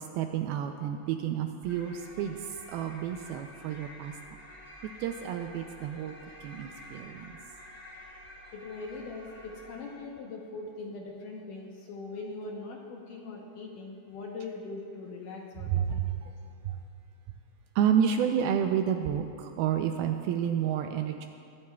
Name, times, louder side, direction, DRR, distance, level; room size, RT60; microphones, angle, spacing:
voice 1, 0.0-2.4 2.7-4.1 5.0-6.1 6.4-7.3 15.7-16.3 16.7-16.8 17.8-21.3, right 9 dB, 80° right, 5 dB, 2.3 m, -30 dB
sound 1, 1.6-10.2, left 1 dB, 10° left, 1.1 m, -50 dB
voice 2, 8.5-16.0, left 3 dB, 70° left, 0 dB, 2.1 m, -41 dB
23.0 x 13.0 x 2.3 m, 2.5 s
omnidirectional pair, 4.7 m